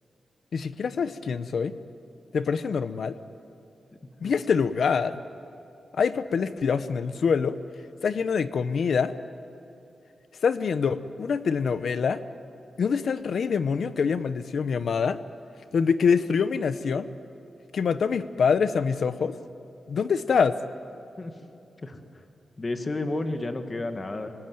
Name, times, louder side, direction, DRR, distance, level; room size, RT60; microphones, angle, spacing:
voice 1, 0.5-1.7 2.3-3.2 4.2-5.2 5.9-7.6 8.0-9.1 10.4-12.2 12.8-15.2 15.7-17.1 17.7-19.4 19.9-20.6, left 6 dB, 70° left, 13 dB, 0.9 m, -25 dB
voice 2, 22.6-24.3, left 2 dB, 30° left, 7 dB, 1.6 m, -31 dB
25.0 x 20.0 x 9.4 m, 2.7 s
wide cardioid pair, 155°, 0 cm